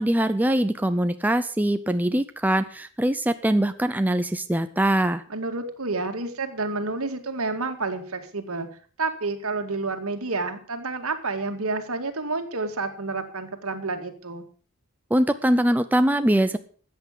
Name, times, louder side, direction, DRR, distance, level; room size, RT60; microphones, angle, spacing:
voice 1, 0.0-5.2 15.1-16.6, right 1 dB, 10° right, 9 dB, 0.5 m, -22 dB
voice 2, 5.3-8.7 9.0-14.5, right 3 dB, 70° right, 6 dB, 2.1 m, -29 dB
14.0 x 8.3 x 6.7 m, 0.42 s
head